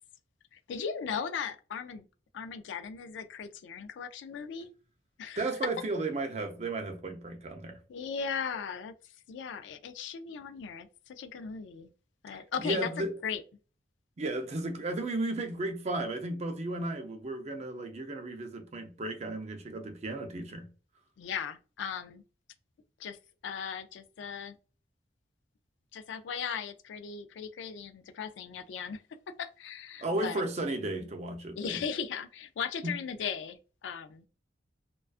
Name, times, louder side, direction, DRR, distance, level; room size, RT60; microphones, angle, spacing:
voice 1, 0.5-2.0 2.3-4.7 5.2-5.4 7.9-11.9 12.2-13.4 21.2-22.2 23.0-23.2 23.4-24.6 25.9-29.0 29.4-30.4 31.6-34.3, left 6 dB, 80° left, 0.3 m, -37 dB
voice 2, 5.4-7.8 12.3-13.1 14.2-20.7 30.0-31.8 32.8-32.9, right 2 dB, 35° right, 0.4 m, -34 dB
2.4 x 2.2 x 2.4 m
head